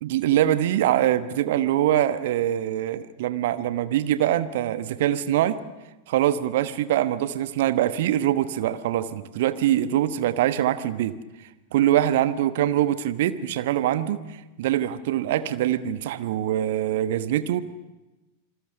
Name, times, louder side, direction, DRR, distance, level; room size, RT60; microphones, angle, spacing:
voice 1, 0.0-5.6 6.1-11.2 11.7-14.2 14.6-17.6, right 12 dB, 55° right, 13 dB, 1.1 m, -23 dB
27.5 x 21.0 x 6.8 m, 1.1 s
figure-of-eight pair, 90°, 0 cm